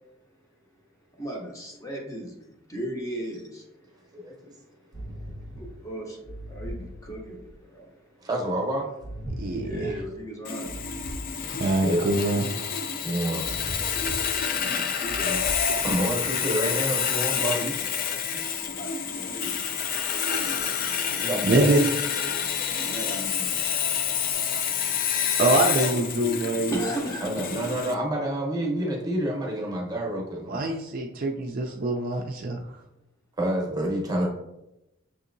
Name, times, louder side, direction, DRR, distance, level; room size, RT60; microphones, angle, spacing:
voice 1, 1.1-8.2 9.3-11.6 12.9-13.6 13.9-16.1 18.7-19.6 22.8-23.5 26.7-27.5, right 1 dB, 15° left, -1 dB, 0.7 m, -38 dB
voice 2, 4.1-4.5 8.2-8.9 11.3-12.0 13.0-13.4 15.8-17.7 18.3-18.4 20.3-20.7 21.1-21.8 22.6-22.7 27.2-30.7 33.4-34.3, right 1 dB, 20° right, -1 dB, 0.8 m, -28 dB
sound 1, 4.9-5.8 6.2-7.5 9.0-10.2 10.7-11.9 13.4-14.6 15.1-16.2, equal, 90° left, 1.3 m, -39 dB
voice 3, 9.4-9.9 11.6-12.5 20.9-21.1 21.4-21.9 25.4-26.9 30.5-32.6, right 2 dB, 45° right, 2 dB, 0.3 m, -24 dB
Sawing, 10.4-27.9, left 7 dB, 45° left, 0.3 m, -28 dB
6.1 x 2.7 x 2.5 m, 0.90 s
head